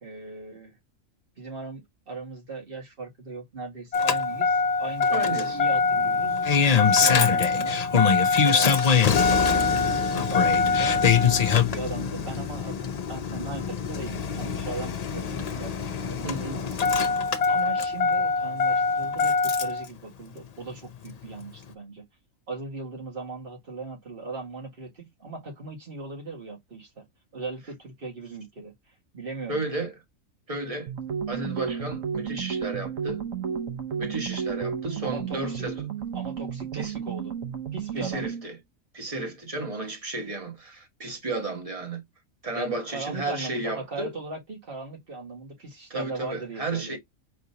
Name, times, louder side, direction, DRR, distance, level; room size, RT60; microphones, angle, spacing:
voice 1, 0.0-0.7 1.4-6.4 6.8-7.8 8.3-11.0 11.4-16.8 17.0-17.2 17.5-22.0 22.5-27.0 27.3-29.6 35.0-35.7 36.1-37.3 37.7-38.3 42.5-47.0, right 3 dB, 45° right, 1.9 m, -39 dB
Engine starting, 3.9-19.9 21.1-21.2, left 5 dB, 60° left, 0.4 m, -23 dB
voice 2, 5.1-5.6 7.0-7.3 16.2-16.6 29.5-29.9 30.5-30.9 31.3-33.2 34.0-35.9 36.7-36.9 38.0-38.6 38.9-42.0 42.4-44.1 45.9-47.0, right 2 dB, 25° right, 1.4 m, -33 dB
sound 1, 30.9-38.5, right 7 dB, 70° right, 1.4 m, -32 dB
4.9 x 3.4 x 2.8 m
omnidirectional pair, 1.4 m